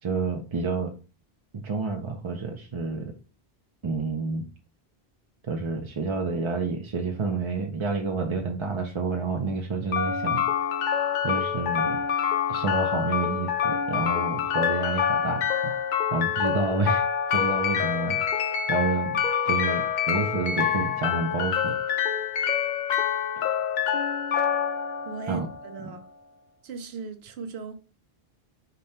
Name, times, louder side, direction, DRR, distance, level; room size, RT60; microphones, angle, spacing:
voice 1, 0.0-0.9 1.5-3.1 3.8-4.5 5.4-10.4 11.2-12.0 12.5-15.7 16.1-17.0 17.3-18.2 18.7-19.2 19.4-21.7 23.4-23.6 25.3-25.5, right 4 dB, 40° right, 0.4 m, -29 dB
sound 1, 9.9-25.9, left 8 dB, 55° left, 0.6 m, -26 dB
voice 2, 25.0-26.1 26.6-27.7, right 5 dB, 85° right, 1.0 m, -37 dB
5.1 x 2.2 x 4.2 m
omnidirectional pair, 1.0 m